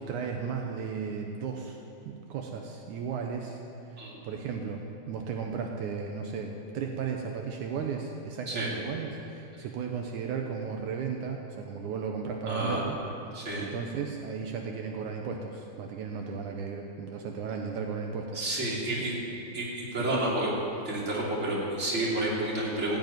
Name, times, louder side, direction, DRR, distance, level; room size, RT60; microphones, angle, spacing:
voice 1, 0.0-1.8 2.0-3.6 4.0-4.8 5.1-13.0 13.6-18.5 19.0-19.2 19.5-19.6 20.0-20.2, right 6 dB, 90° right, 2 dB, 1.7 m, -35 dB
voice 2, 12.5-12.8 13.3-13.7 18.3-19.2 19.5-20.5 20.8-23.0, right 1 dB, 20° right, -5 dB, 2.3 m, -30 dB
16.0 x 7.3 x 9.3 m, 2.8 s
omnidirectional pair, 4.7 m